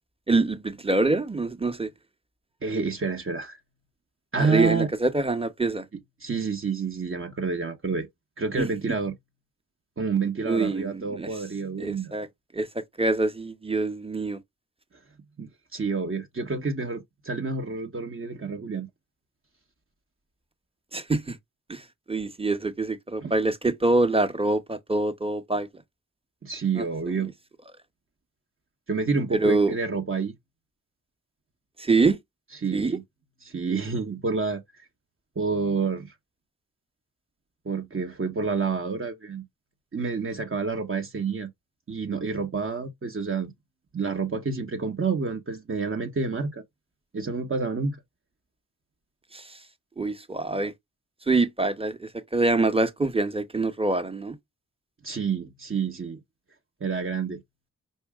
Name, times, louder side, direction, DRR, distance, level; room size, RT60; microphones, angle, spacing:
voice 1, 0.3-1.9 4.4-5.8 8.5-8.7 10.5-11.3 11.8-12.3 12.5-14.4 20.9-21.4 21.7-25.7 26.8-26.9 29.3-29.7 31.8-32.2 32.7-33.0 49.3-49.6 50.0-50.7 51.3-54.4, right 3 dB, 15° right, 1.0 m, -25 dB
voice 2, 2.6-3.6 4.3-4.9 6.2-8.1 8.4-9.1 10.0-12.3 15.4-18.9 23.2-23.3 26.4-27.3 28.9-30.3 32.6-33.0 33.4-34.9 35.4-36.1 37.6-39.4 39.9-41.5 41.9-43.5 43.9-46.6 47.1-48.0 55.0-56.2 56.8-57.4, right 4 dB, 40° right, 1.0 m, -29 dB
5.4 x 2.7 x 3.6 m
cardioid pair, 65°, 33 cm